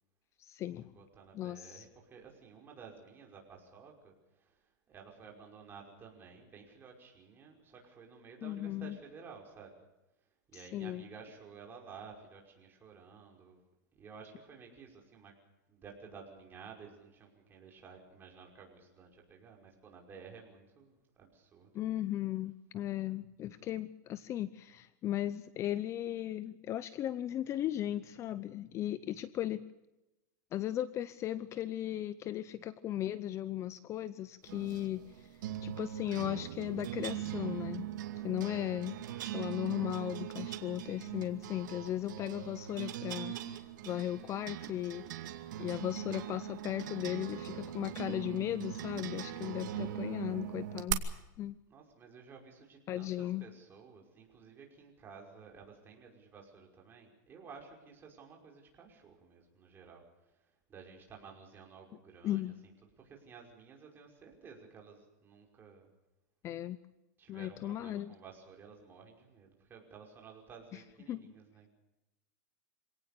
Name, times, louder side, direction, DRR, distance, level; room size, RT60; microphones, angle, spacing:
voice 1, 0.4-0.9 1.3-1.9 8.4-9.0 10.5-11.1 21.7-29.6 30.5-35.3 35.6-37.9 38.2-39.0 39.3-43.3 43.8-45.3 45.6-51.0 51.4-51.6 52.9-53.5 62.2-62.5 66.4-66.8 67.3-68.1 70.7-70.8 71.1-71.3, left 13 dB, 30° left, 16 dB, 0.7 m, -37 dB
voice 2, 0.9-4.1 4.4-4.5 4.9-9.7 10.5-13.6 13.9-15.3 15.7-21.7 49.5-50.0 51.7-60.0 60.7-62.4 63.0-65.9 67.2-71.7, right 5 dB, 20° right, 1 dB, 5.5 m, -53 dB
sound 1, 34.5-50.9, right 12 dB, 75° right, 2.3 m, -41 dB
26.0 x 18.0 x 6.8 m, 0.96 s
supercardioid pair, 150°, 10 cm